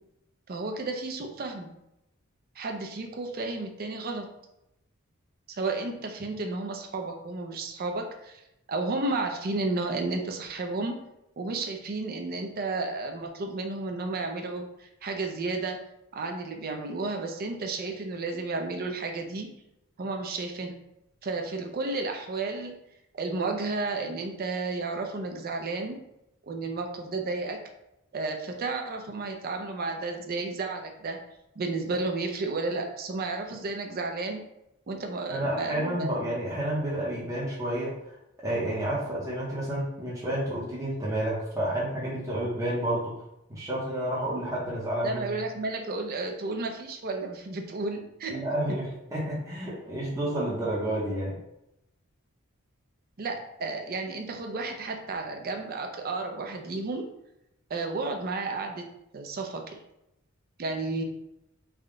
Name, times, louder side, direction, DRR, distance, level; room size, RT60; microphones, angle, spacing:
voice 1, 0.5-1.7 2.6-4.3 5.5-8.4 8.7-11.0 11.4-15.8 16.1-19.5 20.0-20.8 21.2-22.7 23.1-26.0 26.5-27.6 28.1-31.2 31.6-34.4 34.9-36.3 45.0-48.4 53.2-57.1 57.7-58.9 59.1-59.8 60.6-61.0, right 3 dB, 45° right, 4 dB, 0.5 m, -32 dB
voice 2, 35.3-38.0 38.4-43.1 43.5-45.4 48.3-51.4, right 1 dB, 15° right, -7 dB, 0.8 m, -30 dB
3.5 x 2.2 x 3.6 m, 0.86 s
head